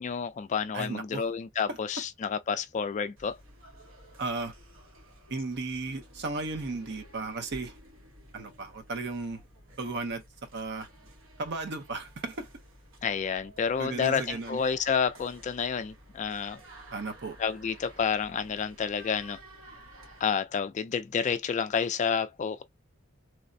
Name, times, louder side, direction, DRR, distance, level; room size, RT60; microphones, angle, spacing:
voice 1, 0.0-3.4 13.0-16.6 17.4-19.4 20.2-22.6, left 6 dB, 35° left, 0.3 m, -29 dB
voice 2, 0.7-1.3 1.7-1.8 4.2-4.5 5.3-7.7 8.3-9.4 9.8-10.2 10.5-10.9 11.4-12.5 13.8-14.6 16.9-17.4, right 3 dB, 55° right, 0.7 m, -35 dB
sound 1, 3.2-20.3, right 1 dB, 80° right, 1.1 m, -53 dB
3.2 x 2.0 x 2.6 m
head